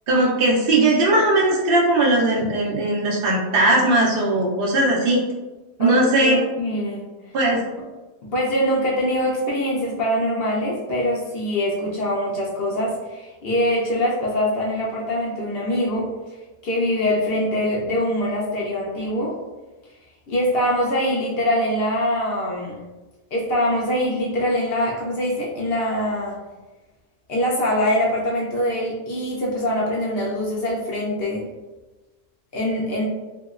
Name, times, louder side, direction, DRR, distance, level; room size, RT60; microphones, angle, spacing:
voice 1, 0.1-5.2 5.8-6.4 7.3-7.6, right 2 dB, 55° right, -4 dB, 0.6 m, -18 dB
voice 2, 5.8-7.0 8.2-16.1 16.6-19.3 20.3-22.8 23.3-26.4 27.3-31.4 32.5-33.0, equal, 60° left, -4 dB, 0.6 m, -23 dB
2.9 x 2.8 x 2.4 m, 1.2 s
omnidirectional pair, 1.6 m